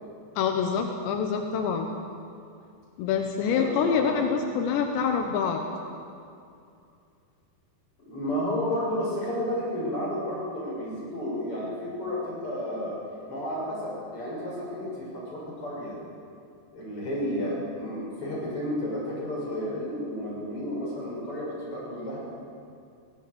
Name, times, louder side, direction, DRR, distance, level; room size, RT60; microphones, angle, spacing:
voice 1, 0.4-1.9 3.0-5.6, left 6 dB, 80° left, 4 dB, 3.4 m, -26 dB
voice 2, 3.5-4.5 8.1-13.0 13.3-16.0 16.7-22.2, left 1 dB, 30° left, -5 dB, 7.4 m, -32 dB
24.0 x 17.0 x 8.5 m, 2.5 s
omnidirectional pair, 5.0 m